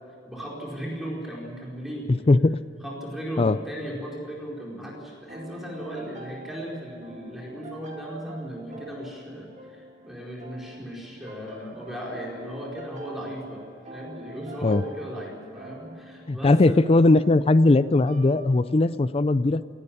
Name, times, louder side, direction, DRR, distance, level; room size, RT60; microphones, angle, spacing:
voice 1, 0.2-2.1 2.8-13.6 13.9-16.8, equal, ahead, -3 dB, 4.6 m, -36 dB
voice 2, 2.1-2.6 3.4-3.6 14.6-14.8 16.3-19.6, left 2 dB, 35° left, 15 dB, 0.4 m, -19 dB
sound 1, 5.3-19.0, right 1 dB, 40° right, 2.5 m, -46 dB
18.5 x 17.5 x 9.9 m, 2.5 s
head